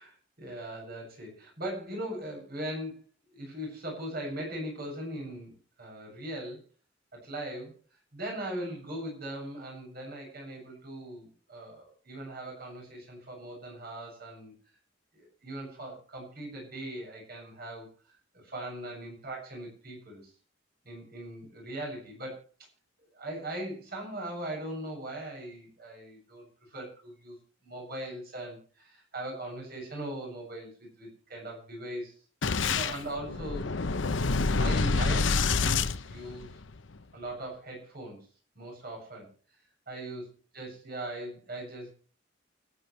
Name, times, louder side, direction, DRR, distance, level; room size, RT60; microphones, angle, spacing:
voice 1, 0.0-3.0 3.3-6.6 7.1-7.8 8.1-14.5 15.1-18.2 18.4-20.3 20.8-22.4 23.1-27.4 27.6-32.1 32.6-33.9 34.2-36.5 37.1-38.3 38.5-39.3 39.9-40.2 40.5-41.9, right 1 dB, 55° right, 0 dB, 7.8 m, -40 dB
Boom, 32.4-36.8, left 4 dB, 75° left, 0.8 m, -27 dB
29.0 x 10.0 x 3.3 m, 0.37 s
head